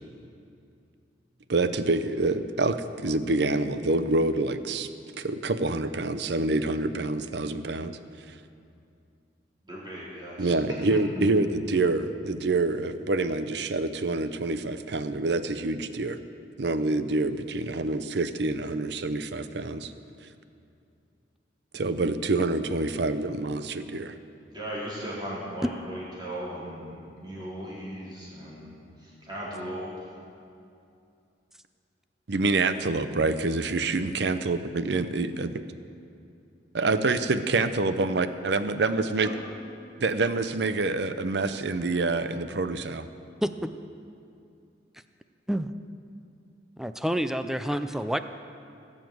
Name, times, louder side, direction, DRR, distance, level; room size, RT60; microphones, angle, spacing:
voice 1, 1.5-8.4 10.4-16.2 16.6-19.9 21.7-24.2 32.3-35.5 36.7-39.3 40.0-43.0, right 3 dB, 60° right, 11 dB, 0.6 m, -27 dB
voice 2, 9.6-11.0 24.5-30.2 39.2-39.3, equal, 25° right, -7 dB, 3.9 m, -37 dB
voice 3, 43.4-43.7 45.5-45.7 46.8-48.2, equal, ahead, 10 dB, 0.4 m, -28 dB
17.5 x 7.5 x 7.8 m, 2.5 s
head